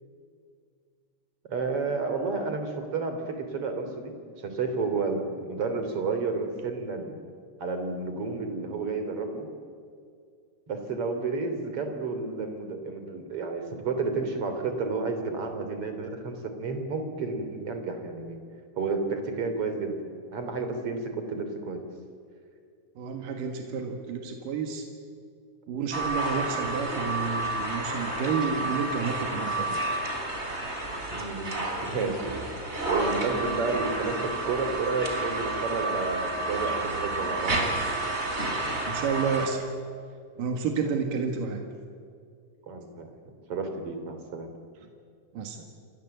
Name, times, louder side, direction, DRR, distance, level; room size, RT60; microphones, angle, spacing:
voice 1, 1.5-7.2 7.6-9.5 10.7-18.4 18.8-20.0 20.3-21.8 31.1-32.3 32.9-37.6 40.8-40.9 42.7-44.5, right 4 dB, 45° right, 7 dB, 4.0 m, -31 dB
voice 2, 23.0-24.9 25.7-29.8 38.8-39.7 40.4-41.6 45.3-45.7, right 5 dB, 85° right, 4 dB, 3.4 m, -30 dB
sound 1, 25.9-39.5, right 2 dB, 20° right, 3.4 m, -30 dB
29.5 x 24.5 x 8.0 m, 2.2 s
omnidirectional pair, 3.7 m